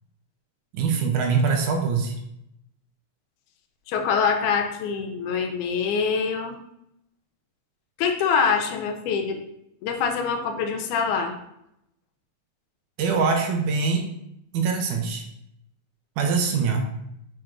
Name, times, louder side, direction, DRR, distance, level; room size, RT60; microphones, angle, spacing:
voice 1, 0.7-2.2 13.0-14.1 14.5-15.3 16.2-16.9, right 5 dB, 90° right, 2 dB, 2.4 m, -23 dB
voice 2, 3.9-6.6 8.0-9.4 9.8-11.3, left 6 dB, 85° left, 4 dB, 2.2 m, -24 dB
7.0 x 4.6 x 3.7 m, 0.78 s
omnidirectional pair, 3.5 m